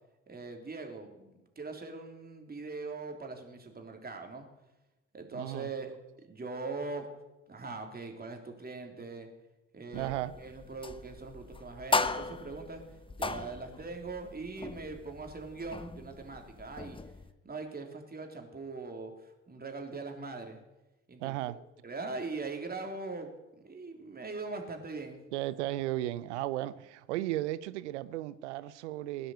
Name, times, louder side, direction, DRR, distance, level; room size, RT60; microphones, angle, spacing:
voice 1, 0.3-4.5 5.1-5.9 6.2-7.1 7.5-9.3 9.7-10.1 10.4-12.8 13.1-17.0 17.4-20.6 21.1-21.4 21.8-25.2, right 3 dB, 25° right, 3.4 m, -41 dB
voice 2, 5.3-5.7 9.9-10.3 21.2-21.6 25.3-29.3, right 15 dB, 75° right, 0.7 m, -35 dB
sound 1, 9.9-17.3, left 3 dB, 15° left, 1.1 m, -37 dB
18.0 x 10.0 x 8.0 m
hypercardioid pair, 60°, 35 cm